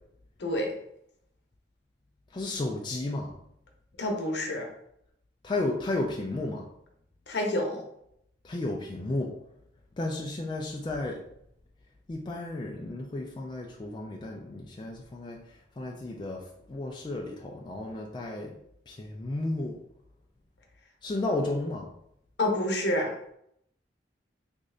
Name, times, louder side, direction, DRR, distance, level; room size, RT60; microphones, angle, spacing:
voice 1, 2.3-3.3 5.4-6.6 8.4-9.3 10.0-11.2 12.1-15.4 15.8-18.5 18.9-19.8 21.0-21.9, left 2 dB, 25° left, -1 dB, 0.3 m, -33 dB
voice 2, 4.0-4.7 7.3-7.8 22.4-23.1, left 1 dB, 70° left, 1 dB, 0.8 m, -28 dB
3.2 x 2.5 x 3.7 m, 0.74 s
head